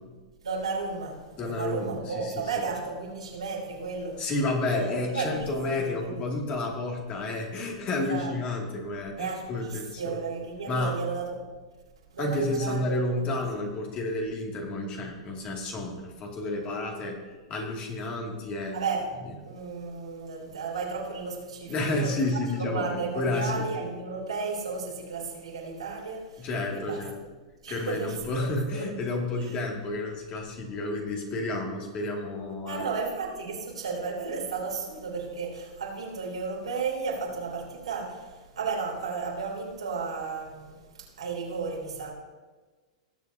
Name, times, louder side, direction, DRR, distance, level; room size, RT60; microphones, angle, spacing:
voice 1, 0.4-4.3 4.7-5.5 5.7-6.2 8.0-8.3 9.2-11.4 12.1-13.3 18.7-19.1 19.4-22.2 22.6-26.5 26.7-27.0 27.6-28.9 29.3-29.5 32.6-42.1, right 4 dB, 85° right, -3 dB, 3.4 m, -34 dB
voice 2, 1.3-2.5 4.2-10.2 10.7-11.0 12.2-18.9 21.7-23.6 26.4-27.2 27.7-33.0, left 2 dB, 35° left, 0 dB, 2.4 m, -31 dB
19.5 x 7.1 x 2.8 m, 1.3 s
hypercardioid pair, 110°, 3 cm